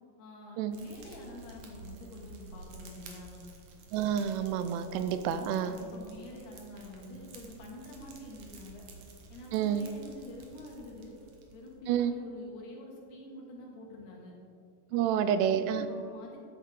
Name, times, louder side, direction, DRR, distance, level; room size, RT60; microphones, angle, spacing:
voice 1, 0.2-3.4 5.6-8.8 9.3-11.2 11.5-14.3 14.9-15.3 15.9-16.5, left 1 dB, 80° left, -1 dB, 3.7 m, -47 dB
Fire, 0.7-11.9, right 3 dB, 65° right, 2.1 m, -52 dB
voice 2, 3.9-5.8 9.5-9.8 11.9-12.1 14.9-15.9, right 9 dB, 85° right, 11 dB, 2.7 m, -29 dB
12.0 x 9.2 x 3.7 m, 2.3 s
omnidirectional pair, 4.6 m